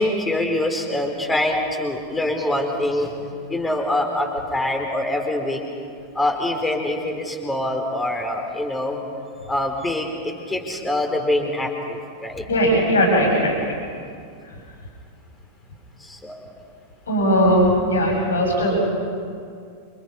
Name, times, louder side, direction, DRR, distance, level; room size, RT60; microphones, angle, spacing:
voice 1, 0.0-3.2 3.5-5.6 6.1-9.0 9.5-12.4 13.6-13.7 16.0-16.4, left 1 dB, 10° left, 2 dB, 4.9 m, -24 dB
voice 2, 12.5-13.5 17.1-18.8, equal, 70° left, -1 dB, 7.9 m, -18 dB
29.0 x 28.5 x 5.6 m, 2.3 s
figure-of-eight pair, 90°, 0 cm